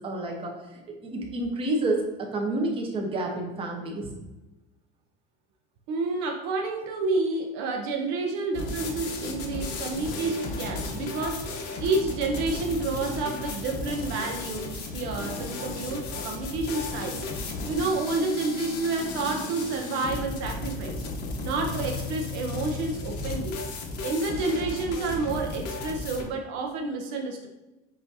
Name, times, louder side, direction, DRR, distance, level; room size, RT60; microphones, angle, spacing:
voice 1, 0.0-4.1, right 2 dB, 25° right, 1 dB, 0.8 m, -29 dB
voice 2, 5.9-21.0 21.4-23.6 24.0-27.5, right 3 dB, 65° right, 2 dB, 0.6 m, -29 dB
sound 1, 8.5-26.2, left 3 dB, 55° left, 0.9 m, -34 dB
6.7 x 2.7 x 2.7 m, 1.0 s
cardioid pair, 140°, 21 cm